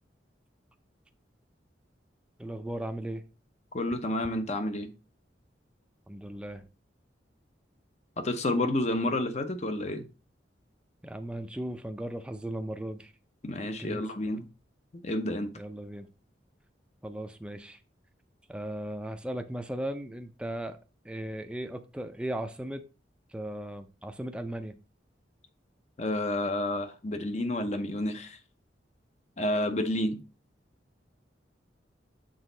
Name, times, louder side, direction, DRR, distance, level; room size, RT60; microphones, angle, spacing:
voice 1, 2.4-3.2 6.1-6.6 11.0-13.1 13.6-14.0 15.5-16.1 17.0-17.8 18.5-20.8 21.0-22.8 23.3-24.7, right 1 dB, 5° right, 0.4 m, -37 dB
voice 2, 3.7-4.9 8.2-10.1 13.4-14.4 14.9-15.5 26.0-28.4 29.4-30.2, left 1 dB, 40° left, 0.7 m, -30 dB
6.4 x 4.0 x 3.9 m
head